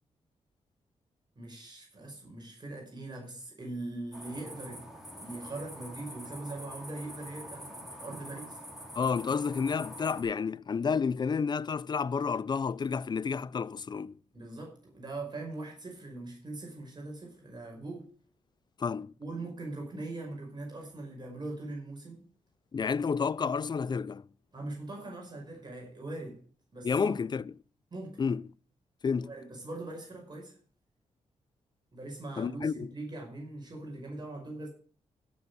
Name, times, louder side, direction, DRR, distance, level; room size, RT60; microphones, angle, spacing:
voice 1, 1.4-4.8 5.1-8.6 14.3-18.1 19.2-22.2 24.5-26.4 26.7-27.2 27.9-28.2 29.2-30.6 31.9-34.7, right 2 dB, 35° right, 5.4 m, -41 dB
sound 1, 4.1-10.2, equal, ahead, 4.4 m, -45 dB
voice 2, 8.9-14.2 18.8-19.1 22.7-24.3 26.8-27.5 28.2-28.4 29.0-29.3 32.4-32.9, left 5 dB, 35° left, 0.4 m, -30 dB
15.5 x 7.2 x 4.8 m
cardioid pair, 75°, 12 cm